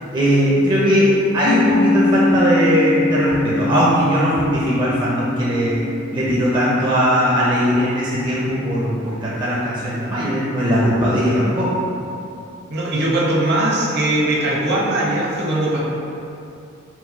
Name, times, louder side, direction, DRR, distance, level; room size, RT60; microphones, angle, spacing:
voice 1, 0.0-5.7 6.1-11.8, equal, 25° right, -7 dB, 0.5 m, -19 dB
Piano, 1.4-8.7, left 2 dB, 70° left, 0.3 m, -24 dB
voice 2, 12.7-15.8, right 1 dB, 55° right, -5 dB, 0.8 m, -20 dB
4.3 x 2.2 x 4.3 m, 2.7 s
head